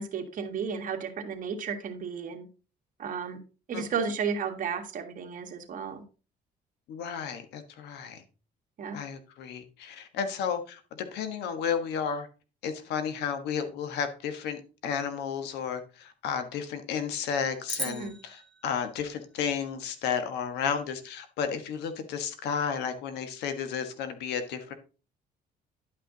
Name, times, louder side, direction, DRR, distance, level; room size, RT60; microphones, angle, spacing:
voice 1, 0.0-2.5 3.0-3.4 3.7-6.0 8.8-9.0 17.9-18.1, right 6 dB, 50° right, 1.7 m, -33 dB
voice 2, 3.7-4.1 6.9-8.2 8.9-12.3 12.6-24.7, left 7 dB, 80° left, 1.4 m, -33 dB
sound 1, 17.7-20.1, right 2 dB, ahead, 2.6 m, -40 dB
11.0 x 5.8 x 3.9 m
cardioid pair, 110°, 17 cm